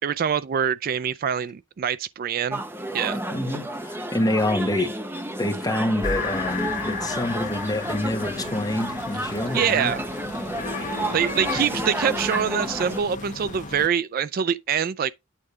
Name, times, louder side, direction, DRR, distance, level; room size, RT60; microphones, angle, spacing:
voice 1, 0.0-2.6 2.9-3.2 9.5-10.0 11.1-15.1, right 7 dB, 45° right, 0.3 m, -24 dB
sound 1, 2.5-13.0, right 1 dB, 10° right, 0.8 m, -31 dB
voice 2, 3.3-4.9 5.4-9.9 10.8-10.9, left 1 dB, 20° left, 1.5 m, -27 dB
sound 2, 6.0-13.9, left 4 dB, 40° left, 1.0 m, -34 dB
8.7 x 3.8 x 4.8 m
head